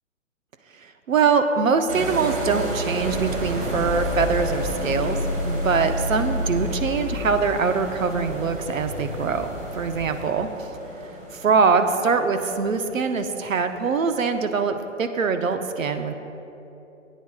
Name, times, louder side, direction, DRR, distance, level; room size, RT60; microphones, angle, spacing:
voice 1, 1.1-5.2 5.4-10.5 11.3-16.1, right 5 dB, 80° right, 7 dB, 0.9 m, -23 dB
sound 1, 1.9-14.0, right 1 dB, 30° right, 1.6 m, -33 dB
sound 2, 3.0-10.2, left 2 dB, 5° right, 2.4 m, -30 dB
18.0 x 9.4 x 2.4 m, 3.0 s
hypercardioid pair, 140°, 39 cm